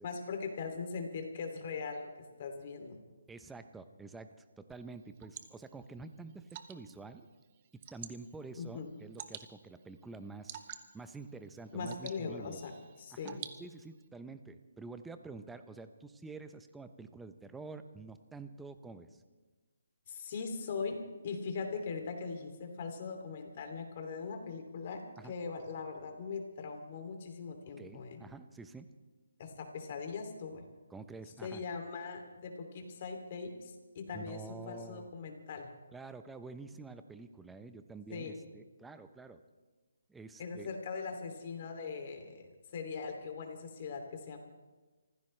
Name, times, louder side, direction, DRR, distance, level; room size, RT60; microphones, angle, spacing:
voice 1, 0.0-2.1 2.4-3.0 8.6-8.9 11.7-12.7 13.0-13.4 20.1-21.0 21.2-28.2 29.4-30.6 31.4-35.7 38.1-38.4 40.4-44.4, left 5 dB, 40° left, 4 dB, 2.7 m, -40 dB
voice 2, 3.3-7.3 7.7-10.6 10.9-12.6 13.1-19.2 25.2-25.3 27.8-28.9 30.9-31.6 34.1-35.1 35.9-39.4 40.1-40.7, right 3 dB, 5° right, 10 dB, 0.7 m, -48 dB
Water / Drip, 4.7-14.1, right 10 dB, 35° right, 1.0 m, -51 dB
25.5 x 15.5 x 3.3 m, 1.3 s
hypercardioid pair, 155°, 0 cm